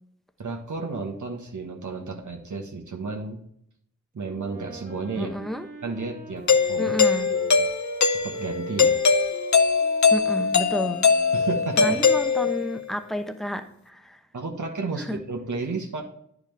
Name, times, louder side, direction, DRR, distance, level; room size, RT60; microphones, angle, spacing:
voice 1, 0.4-3.4 4.1-5.3 5.8-7.0 7.3-7.6 8.2-9.0 11.3-12.0 14.3-16.0, right 4 dB, 80° right, 1 dB, 1.2 m, -32 dB
Wind instrument woodwind instrument, 4.3-12.7, right 4 dB, 30° right, 1.4 m, -42 dB
voice 2, 5.2-5.7 6.8-7.3 10.1-11.1 11.8-14.2 15.1-15.2, equal, ahead, 7 dB, 0.8 m, -30 dB
Doorbell, 6.5-12.8, left 5 dB, 70° left, 0.7 m, -21 dB
10.5 x 4.8 x 3.4 m, 0.70 s
wide cardioid pair, 65°, 30 cm